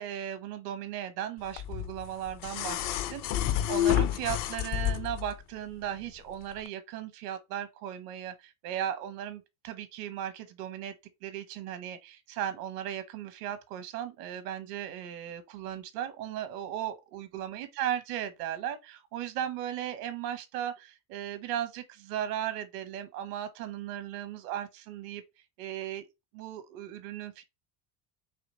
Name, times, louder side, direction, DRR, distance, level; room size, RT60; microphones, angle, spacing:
voice 1, 0.0-10.9 11.2-25.2 25.6-26.0 26.3-27.4, right 11 dB, 65° right, 1.2 m, -36 dB
sound 1, 1.6-5.3 6.6-6.7, left 11 dB, 45° left, 0.6 m, -29 dB
4.9 x 3.0 x 2.9 m
hypercardioid pair, 80°, 49 cm